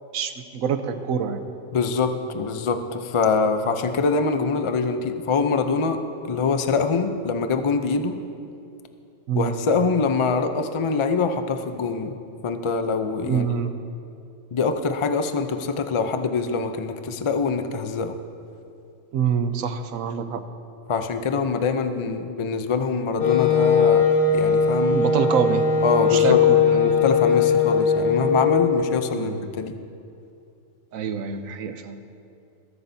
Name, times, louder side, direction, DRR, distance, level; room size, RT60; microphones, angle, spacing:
voice 1, 0.1-1.4 9.3-9.6 13.2-13.7 19.1-20.5 24.8-25.6 26.1-26.6 29.1-29.5 30.9-32.0, right 7 dB, 90° right, 8 dB, 1.2 m, -26 dB
voice 2, 1.7-6.0 6.3-8.2 9.3-12.2 12.4-13.4 14.5-18.2 20.9-24.1 24.3-25.0 25.8-29.8, left 4 dB, 50° left, 8 dB, 0.3 m, -24 dB
Wind instrument woodwind instrument, 23.2-28.9, left 6 dB, 75° left, 2.5 m, -19 dB
21.5 x 11.0 x 2.7 m, 2.6 s
omnidirectional pair, 1.4 m